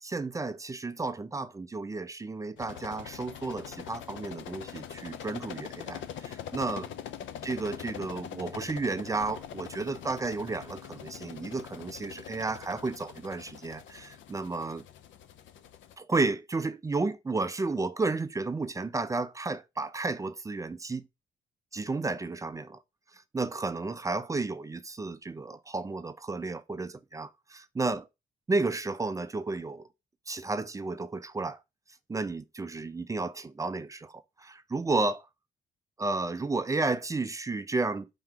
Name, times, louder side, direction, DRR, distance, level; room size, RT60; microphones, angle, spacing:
voice 1, 0.0-6.9 7.4-14.8 16.0-21.0 21.7-22.8 23.1-28.1 28.5-29.9 30.3-31.6 32.1-35.3 36.0-38.1, right 3 dB, 15° right, 0.4 m, -32 dB
sound 1, 2.6-16.0, left 9 dB, 70° left, 0.5 m, -43 dB
4.5 x 2.9 x 3.6 m
cardioid pair, 90°, 20 cm